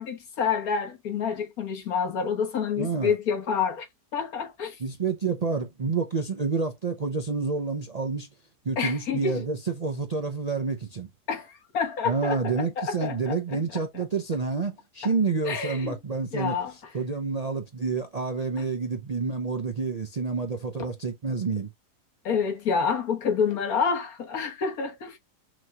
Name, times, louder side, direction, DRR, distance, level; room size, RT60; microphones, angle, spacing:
voice 1, 0.0-3.9 4.1-4.8 8.8-9.5 11.3-14.0 15.4-16.0 16.3-16.7 22.2-25.2, left 6 dB, 65° left, 1.7 m, -28 dB
voice 2, 2.8-3.1 4.8-8.3 8.6-11.1 12.1-16.5 16.9-21.7, right 4 dB, 65° right, 0.3 m, -28 dB
6.1 x 2.9 x 2.3 m
omnidirectional pair, 1.7 m